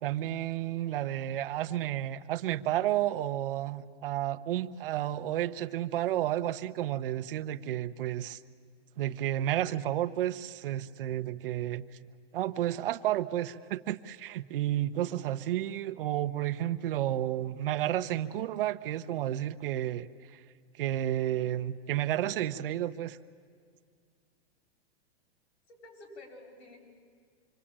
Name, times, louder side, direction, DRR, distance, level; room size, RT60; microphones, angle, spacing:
voice 1, 0.0-8.4 9.0-11.9 12.3-20.4 20.8-23.2, right 13 dB, 55° right, 10 dB, 1.0 m, -31 dB
voice 2, 25.7-26.8, left 2 dB, 75° left, 0 dB, 8.0 m, -50 dB
26.0 x 25.0 x 8.9 m, 2.1 s
supercardioid pair, 160°, 32 cm